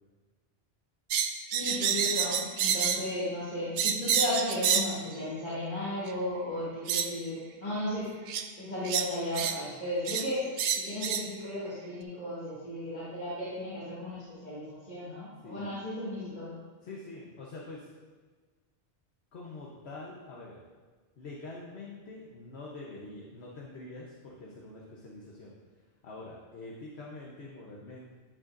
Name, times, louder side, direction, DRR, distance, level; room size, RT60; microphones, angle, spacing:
sound 1, 1.1-3.1 3.8-5.0 6.1-6.2 6.9-7.1 8.3-8.5 8.8-9.6 10.1-10.3 10.6-11.3, right 7 dB, 90° right, 0.9 m, -28 dB
voice 1, 1.5-8.1 8.6-10.4 10.8-16.5, left 1 dB, 40° left, -12 dB, 2.3 m, -35 dB
voice 2, 16.8-17.9 19.3-20.6 21.2-25.5 26.0-28.1, left 2 dB, 70° left, -3 dB, 1.3 m, -45 dB
10.5 x 9.1 x 2.6 m, 1.4 s
omnidirectional pair, 1.1 m